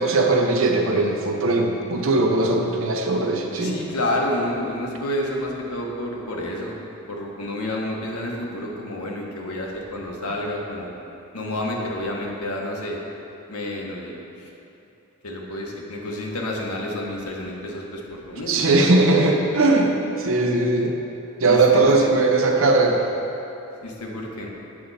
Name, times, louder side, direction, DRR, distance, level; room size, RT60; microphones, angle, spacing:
voice 1, 0.0-3.7 18.5-20.9 21.4-23.0, right 2 dB, 60° right, 2 dB, 0.8 m, -19 dB
voice 2, 3.6-6.7 7.1-10.9 11.3-13.0 13.5-14.5 15.2-18.7 21.4-22.1 23.8-24.5, left 1 dB, 85° left, -1 dB, 1.2 m, -29 dB
8.5 x 6.7 x 4.1 m, 2.9 s
head